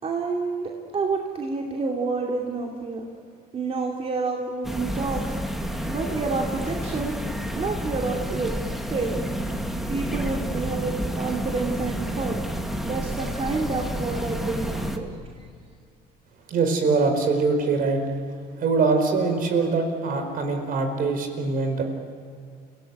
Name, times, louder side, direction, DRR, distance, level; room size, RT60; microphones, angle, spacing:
voice 1, 0.0-3.0 3.5-5.4 5.7-7.1 7.5-8.6 8.9-9.3 9.9-12.4 12.8-15.2, right 4 dB, 35° right, 0 dB, 2.7 m, -29 dB
sound 1, 4.6-15.0, equal, ahead, 2.1 m, -30 dB
voice 2, 16.5-18.0 18.6-21.8, right 4 dB, 55° right, 5 dB, 4.8 m, -23 dB
28.5 x 17.5 x 9.2 m, 2.3 s
cardioid pair, 110°, 17 cm